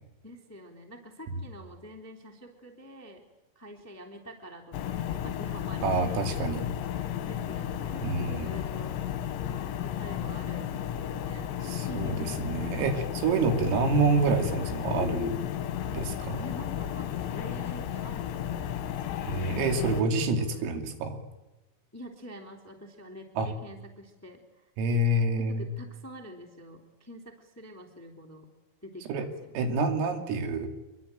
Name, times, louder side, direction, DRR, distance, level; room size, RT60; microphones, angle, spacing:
voice 1, 0.2-3.2 3.5-6.3 7.2-9.0 9.8-11.6 11.9-12.7 16.4-19.0 20.0-20.8 21.9-24.4 25.3-28.5 28.8-29.5, equal, 5° left, 3 dB, 1.8 m, -45 dB
sound 1, 4.7-20.0, left 10 dB, 70° left, 3.7 m, -33 dB
voice 2, 5.8-6.7 8.0-8.6 11.6-15.4 15.9-16.4 19.3-21.2 23.4-23.5 24.8-25.7 29.1-29.3 29.6-30.7, right 3 dB, 90° right, 5 dB, 5.4 m, -27 dB
26.5 x 23.0 x 9.1 m, 1.0 s
omnidirectional pair, 5.8 m